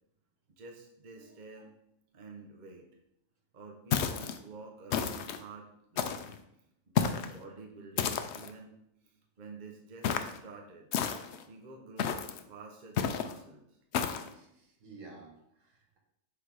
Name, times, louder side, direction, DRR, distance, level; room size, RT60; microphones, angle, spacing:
voice 1, 0.5-1.8 2.1-2.9 3.5-6.2 6.9-8.8 9.0-10.9 11.4-13.8, right 3 dB, 40° right, 1 dB, 1.0 m, -49 dB
voice 2, 1.2-1.7 14.3-16.0, right 3 dB, 70° right, 1 dB, 1.6 m, -53 dB
sound 1, 3.9-4.4 4.9-5.4 6.0-6.4 6.9-7.3 8.0-8.5 10.0-10.4 10.9-11.4 12.0-12.4 13.0-13.3 13.9-14.3, left 7 dB, 65° left, 0.8 m, -31 dB
6.6 x 4.0 x 4.7 m, 0.79 s
omnidirectional pair, 1.4 m